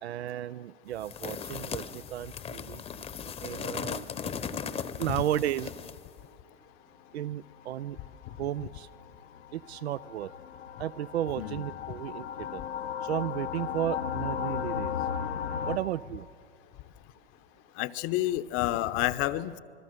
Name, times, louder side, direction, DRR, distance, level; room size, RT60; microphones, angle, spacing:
voice 1, 0.0-2.8 3.4-4.0 5.0-5.7 7.1-8.0 8.4-8.9 9.5-10.3 10.8-12.6 13.0-15.0 15.7-16.3, right 12 dB, 80° right, 18 dB, 0.5 m, -33 dB
sound 1, 1.0-6.1, left 7 dB, 20° left, 0.9 m, -38 dB
sound 2, 7.3-15.8, left 8 dB, 85° left, 1.2 m, -36 dB
voice 2, 17.8-19.6, left 15 dB, 40° left, 14 dB, 0.9 m, -29 dB
27.0 x 21.5 x 6.7 m, 2.3 s
hypercardioid pair, 110°, 32 cm